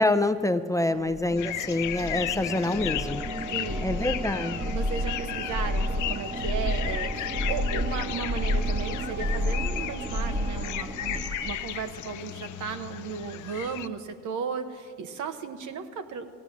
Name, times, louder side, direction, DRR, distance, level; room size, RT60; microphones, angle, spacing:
voice 1, 0.0-3.2 3.8-4.6, left 2 dB, 10° left, 10 dB, 0.5 m, -26 dB
sound 1, 1.1-11.7, equal, 20° right, 1.0 m, -31 dB
sound 2, 1.4-13.9, left 13 dB, 75° left, 0.5 m, -35 dB
voice 2, 3.5-3.9 4.6-16.3, right 6 dB, 75° right, 8 dB, 1.1 m, -35 dB
16.0 x 9.9 x 7.3 m, 2.1 s
cardioid pair, 90°, 30 cm